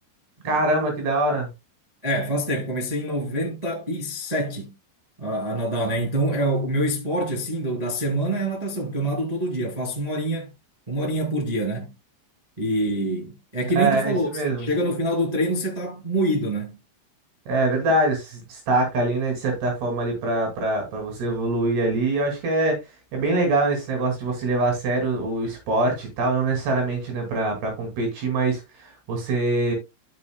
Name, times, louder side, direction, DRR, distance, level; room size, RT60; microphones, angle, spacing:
voice 1, 0.4-1.5 13.8-14.7 17.5-22.8 23.1-29.8, right 2 dB, 65° right, 4.5 m, -24 dB
voice 2, 2.0-4.7 5.2-10.5 10.9-11.9 12.6-16.8, right 1 dB, 20° right, 1.0 m, -26 dB
13.0 x 6.1 x 2.2 m
omnidirectional pair, 5.2 m